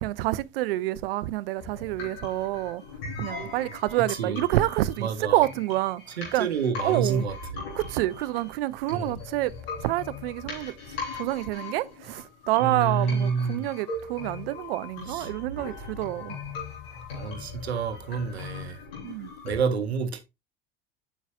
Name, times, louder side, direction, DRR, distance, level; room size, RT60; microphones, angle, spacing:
voice 1, 0.0-2.8 3.2-6.0 6.3-6.5 6.8-7.3 7.7-9.5 9.8-10.7 11.1-16.4 19.0-19.3, right 16 dB, 60° right, 0.5 m, -28 dB
sound 1, 1.6-19.6, left 3 dB, 70° left, 3.5 m, -40 dB
voice 2, 4.1-4.4 5.0-5.5 6.2-7.4 8.9-9.2 12.6-13.7 15.1-15.3 15.9-16.1 17.1-18.8 19.4-20.2, right 5 dB, 80° right, 0.9 m, -28 dB
8.0 x 6.0 x 2.3 m
figure-of-eight pair, 65°, 32 cm